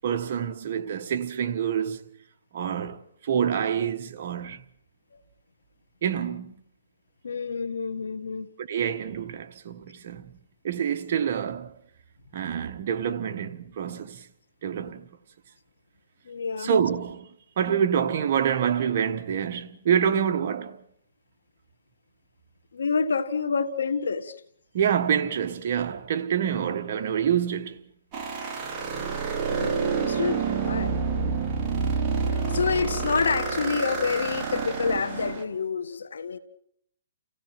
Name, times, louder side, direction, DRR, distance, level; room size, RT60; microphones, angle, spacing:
voice 1, 0.0-2.1 2.5-4.6 6.0-6.6 8.6-10.3 10.6-11.7 12.3-14.3 14.6-15.1 16.6-20.8 24.7-27.8, right 8 dB, 45° right, 1.3 m, -27 dB
voice 2, 7.2-8.5 16.2-16.7 22.7-24.4 29.5-30.9 32.3-36.4, left 5 dB, 85° left, 1.7 m, -28 dB
sound 1, 28.1-35.4, right 5 dB, 25° right, 2.1 m, -28 dB
30.0 x 15.5 x 5.9 m
hypercardioid pair, 160°, 0 cm